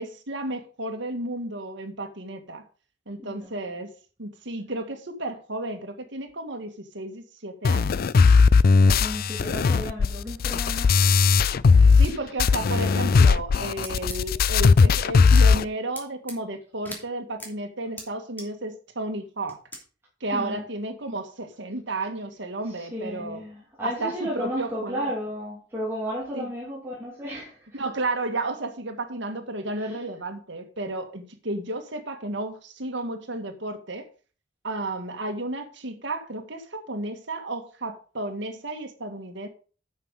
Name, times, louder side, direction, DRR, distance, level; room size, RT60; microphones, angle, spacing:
voice 1, 0.0-2.6 3.1-3.9 4.2-7.9 12.0-19.6 20.2-23.4 23.8-25.1 26.3-26.5 27.7-34.1 34.6-39.5, right 2 dB, 65° right, 1.9 m, -33 dB
voice 2, 3.2-3.7 8.9-11.3 12.0-12.2 20.3-20.6 22.8-27.7 29.8-30.0, equal, 15° right, 2.9 m, -34 dB
sound 1, 7.6-12.1 12.4-15.6, left 4 dB, 50° left, 0.4 m, -18 dB
sound 2, 13.8-14.2 14.9-15.0 15.3-15.4 16.0-16.4 16.9-17.0 17.4-17.5 18.0-18.1 18.4-18.5 19.5-19.8, left 1 dB, 10° left, 2.9 m, -38 dB
9.1 x 7.1 x 5.2 m
head